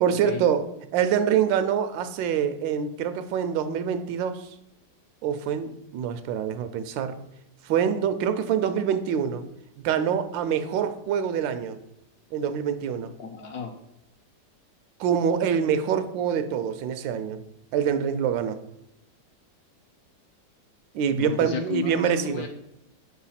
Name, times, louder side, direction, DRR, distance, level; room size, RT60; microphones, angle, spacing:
voice 1, 0.0-4.5 5.2-7.2 7.6-9.4 9.8-11.8 12.3-13.1 15.0-17.4 17.7-18.6 20.9-22.5, right 8 dB, 85° right, 10 dB, 1.3 m, -25 dB
voice 2, 13.2-13.7 21.2-22.5, left 6 dB, 70° left, 4 dB, 0.9 m, -33 dB
4.5 x 4.0 x 5.6 m, 0.83 s
omnidirectional pair, 2.0 m